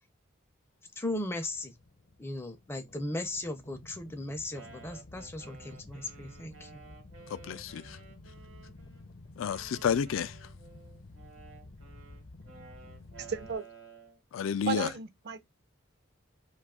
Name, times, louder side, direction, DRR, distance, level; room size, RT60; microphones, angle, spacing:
voice 1, 1.0-1.7 2.2-6.8, left 1 dB, 10° left, 0.4 m, -37 dB
sound 1, 1.1-13.6, left 2 dB, 55° left, 0.7 m, -52 dB
Wind instrument woodwind instrument, 4.5-9.0 9.5-14.2, right 5 dB, 80° right, 1.0 m, -54 dB
voice 2, 7.3-8.0 9.4-10.3 14.3-14.9, left 7 dB, 75° left, 0.3 m, -30 dB
voice 3, 13.3-13.6 14.7-15.4, right 6 dB, 50° right, 0.4 m, -34 dB
2.6 x 2.3 x 3.5 m
head